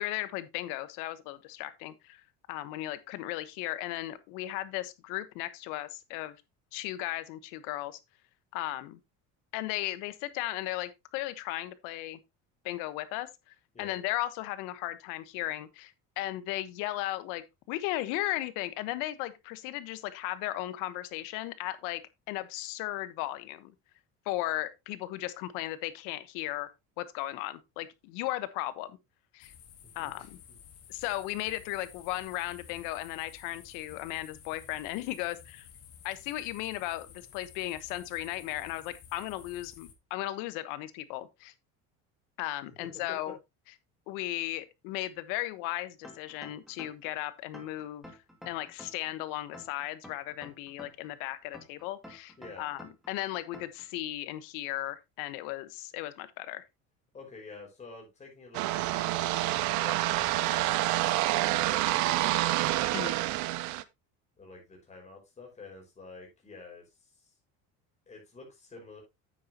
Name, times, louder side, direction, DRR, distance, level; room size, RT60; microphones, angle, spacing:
voice 1, 0.0-2.2 2.5-6.4 6.7-8.0 8.5-9.0 9.5-12.2 12.6-22.0 22.3-23.7 24.2-26.7 27.0-29.0 29.3-29.5 29.9-30.2 30.9-35.6 36.0-41.5 42.4-43.4 44.1-48.1 48.5-52.8 53.1-56.6 62.9-63.1, left 16 dB, 80° left, 1.2 m, -36 dB
sound 1, 29.4-39.9, left 8 dB, 50° left, 2.1 m, -53 dB
voice 2, 42.8-43.3 52.4-52.7 57.1-60.8 61.5-62.4 64.4-67.3 68.1-69.0, left 3 dB, 20° left, 5.3 m, -49 dB
sound 2, 46.0-47.1 47.5-49.1 49.5-51.1 51.5-53.1 53.5-53.9, left 1 dB, ahead, 2.1 m, -49 dB
sound 3, 58.5-63.8, right 16 dB, 65° right, 0.8 m, -28 dB
9.5 x 8.7 x 2.9 m
cardioid pair, 145°, 32 cm